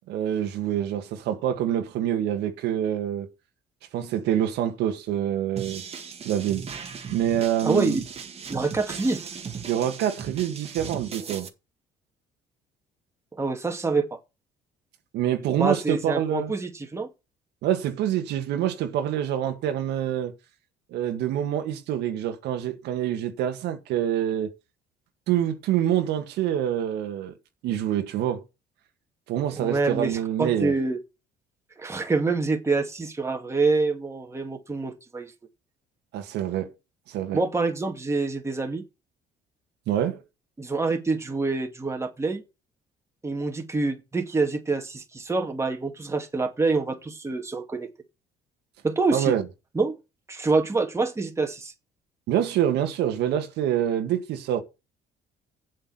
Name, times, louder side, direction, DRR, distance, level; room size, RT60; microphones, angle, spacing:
voice 1, 0.1-3.3 3.9-5.8 6.3-6.7 7.1-8.0 9.7-11.5 15.1-16.5 17.6-20.3 20.9-24.5 25.3-27.3 27.6-28.4 29.3-30.7 36.1-36.7 37.1-37.4 39.9-40.2 49.1-49.4 52.3-54.6, right 10 dB, 80° right, 1.8 m, -26 dB
sound 1, 5.6-11.5, right 6 dB, 35° right, 2.0 m, -38 dB
voice 2, 7.6-8.0 8.5-9.2 13.3-14.2 15.6-17.1 29.5-31.0 31.8-35.3 37.3-38.8 40.6-42.4 43.2-47.9 48.8-49.3 49.8-50.0 50.3-51.7, right 3 dB, 15° right, 2.3 m, -26 dB
8.0 x 6.5 x 7.9 m
cardioid pair, 110°, 17 cm